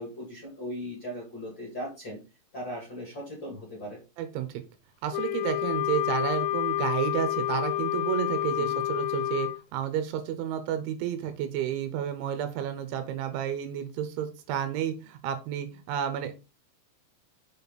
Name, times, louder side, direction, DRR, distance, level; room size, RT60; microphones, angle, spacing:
voice 1, 0.0-2.2 2.5-4.0 8.6-8.8, equal, 40° left, -3 dB, 1.7 m, -38 dB
voice 2, 4.2-4.6 5.0-16.4, right 10 dB, 75° right, 8 dB, 3.2 m, -31 dB
Wind instrument woodwind instrument, 5.1-9.6, left 15 dB, 85° left, 2.9 m, -29 dB
7.3 x 5.1 x 4.0 m, 0.29 s
omnidirectional pair, 5.7 m